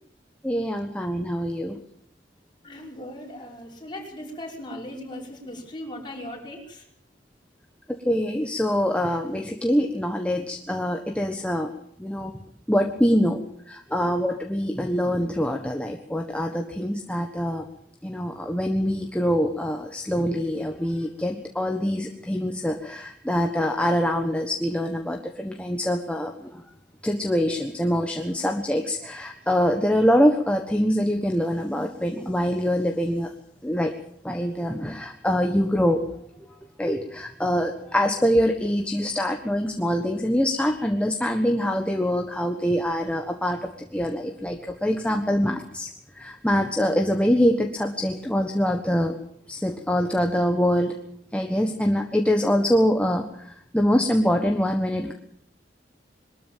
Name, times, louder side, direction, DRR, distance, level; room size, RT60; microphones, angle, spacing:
voice 1, 0.4-1.8 7.9-11.7 12.0-12.3 12.7-13.4 13.7-17.6 18.0-26.6 27.0-33.3 33.6-33.9 34.2-36.0 36.8-45.9 46.1-49.1 49.5-50.9 51.3-55.1, equal, 5° left, 3 dB, 1.4 m, -24 dB
voice 2, 2.6-6.8 36.5-36.6, left 1 dB, 25° left, -1 dB, 5.9 m, -38 dB
22.5 x 13.5 x 9.2 m, 0.68 s
head